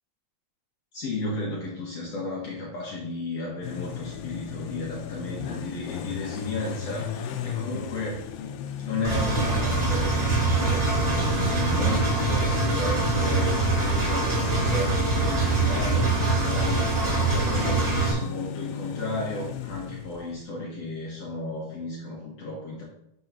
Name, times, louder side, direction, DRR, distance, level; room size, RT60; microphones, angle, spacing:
voice 1, 0.9-8.2 8.8-17.0 17.3-22.8, left 2 dB, 60° left, -3 dB, 1.6 m, -34 dB
sound 1, 3.6-20.5, left 6 dB, 80° left, 2.1 m, -36 dB
Engine, 9.0-18.1, right 3 dB, 30° right, 3.0 m, -24 dB
6.9 x 3.9 x 6.0 m, 0.80 s
omnidirectional pair, 4.2 m